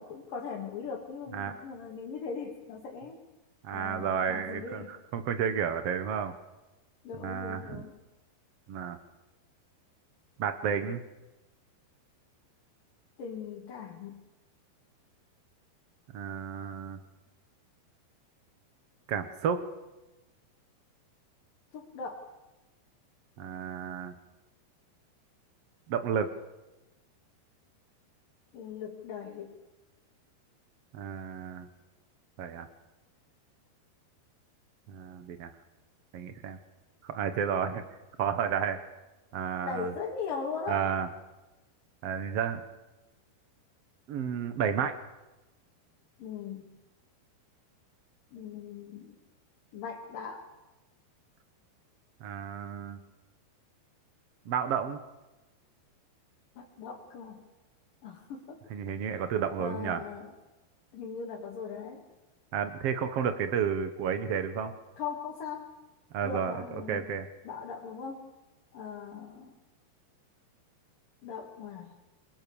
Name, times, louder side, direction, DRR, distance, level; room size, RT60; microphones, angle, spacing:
voice 1, 0.0-3.2 3.7-5.0 7.0-7.9 13.2-14.2 21.7-22.3 28.5-29.6 39.6-40.8 46.2-46.7 48.3-49.2 49.7-50.5 56.6-57.5 58.0-58.6 59.6-60.3 60.9-62.1 65.0-65.7 66.2-67.1 67.4-68.3 68.7-69.6 71.2-71.9, left 5 dB, 55° left, -2 dB, 4.2 m, -39 dB
voice 2, 3.6-6.3 7.2-7.8 8.7-9.0 10.4-11.0 16.1-17.0 19.1-19.6 23.4-24.1 25.9-26.3 30.9-31.7 32.4-32.7 34.9-35.5 36.1-36.6 37.0-37.8 38.2-38.8 39.3-39.9 40.7-41.1 42.0-42.6 44.1-45.0 52.2-53.0 54.4-55.0 58.7-60.0 62.5-64.7 66.1-67.3, right 7 dB, 75° right, 9 dB, 1.4 m, -31 dB
29.5 x 22.5 x 7.0 m, 1.1 s
omnidirectional pair, 4.8 m